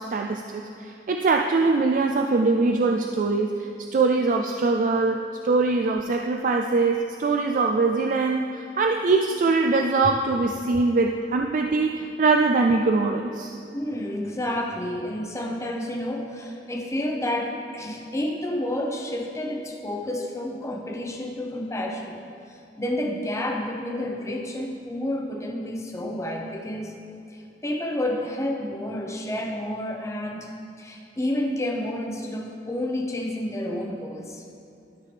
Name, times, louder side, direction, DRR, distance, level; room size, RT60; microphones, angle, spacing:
voice 1, 0.0-13.5, right 3 dB, 45° right, 3 dB, 0.3 m, -22 dB
voice 2, 13.7-22.2 22.5-27.0 27.3-30.5 30.8-34.4, left 1 dB, 15° left, 1 dB, 0.8 m, -30 dB
12.5 x 5.6 x 3.3 m, 2.8 s
head